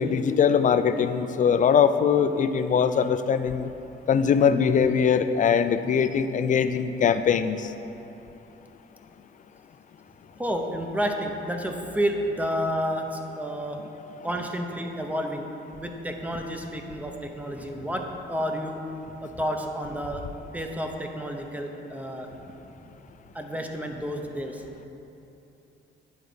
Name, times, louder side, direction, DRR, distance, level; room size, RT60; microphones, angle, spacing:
voice 1, 0.0-3.7 4.1-7.7, left 7 dB, 40° left, 10 dB, 0.4 m, -22 dB
voice 2, 10.4-13.8 14.2-15.5 15.8-18.0 18.3-18.8 19.1-20.2 20.5-22.3 23.3-24.6, equal, 5° right, 3 dB, 0.7 m, -30 dB
9.6 x 4.0 x 5.1 m, 3.0 s
cardioid pair, 90°, 20 cm